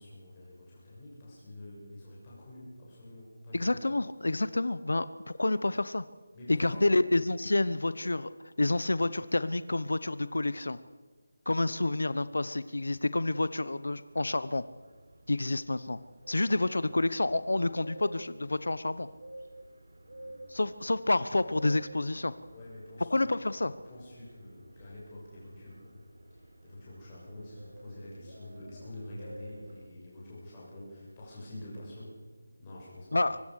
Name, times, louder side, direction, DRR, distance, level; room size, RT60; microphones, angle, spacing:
voice 1, 0.0-3.8 6.3-6.9 20.0-20.4 22.3-33.2, left 1 dB, 10° left, -7 dB, 7.0 m, -47 dB
voice 2, 3.5-6.0 6.5-8.3 8.6-10.8 11.5-14.6 15.3-16.0 16.3-19.1 20.5-22.3 23.1-23.7 33.1-33.4, left 2 dB, 90° left, 15 dB, 1.0 m, -29 dB
sound 1, 14.0-29.9, right 1 dB, 80° right, 4.4 m, -52 dB
24.5 x 19.5 x 6.6 m, 1.3 s
figure-of-eight pair, 180°, 0 cm